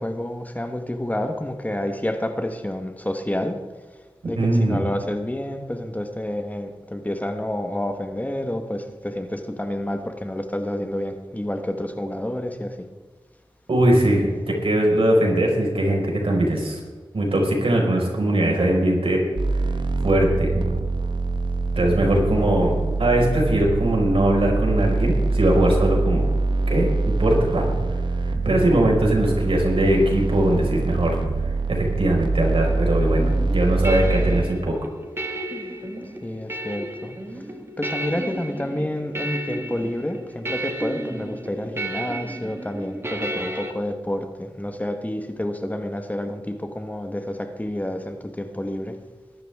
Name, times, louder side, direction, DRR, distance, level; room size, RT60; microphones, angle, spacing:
voice 1, 0.0-3.6 4.2-12.9 21.8-22.0 36.2-37.2 37.8-49.0, left 1 dB, 15° left, 6 dB, 1.3 m, -29 dB
voice 2, 4.3-4.8 13.7-16.8 17.1-19.2 20.0-20.6 21.7-26.2 26.7-26.9 27.2-27.8 28.2-31.2 31.7-34.7, right 1 dB, 80° right, -1 dB, 5.0 m, -20 dB
sound 1, 19.4-34.4, right 3 dB, 55° right, 1.0 m, -24 dB
sound 2, 33.2-43.7, right 1 dB, 25° right, 1.9 m, -32 dB
21.5 x 12.0 x 3.6 m, 1.3 s
wide cardioid pair, 85°, 9 cm